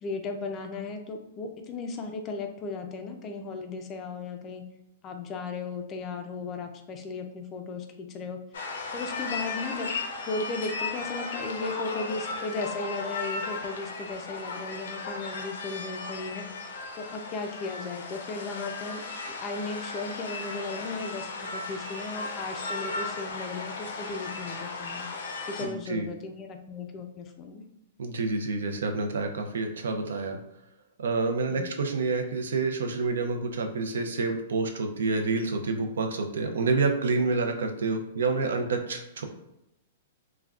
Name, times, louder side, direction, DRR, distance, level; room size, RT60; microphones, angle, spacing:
voice 1, 0.0-4.6 5.0-8.4 8.9-9.9 10.2-19.0 19.4-25.1 25.5-27.7 31.5-31.7, left 3 dB, 25° left, 5 dB, 0.3 m, -36 dB
sound 1, 8.5-25.7, left 3 dB, 75° left, 0.5 m, -36 dB
voice 2, 25.6-26.1 28.0-30.4 31.0-39.2, right 3 dB, 90° right, 5 dB, 0.5 m, -28 dB
3.4 x 2.1 x 2.3 m, 0.85 s
hypercardioid pair, 155°, 0 cm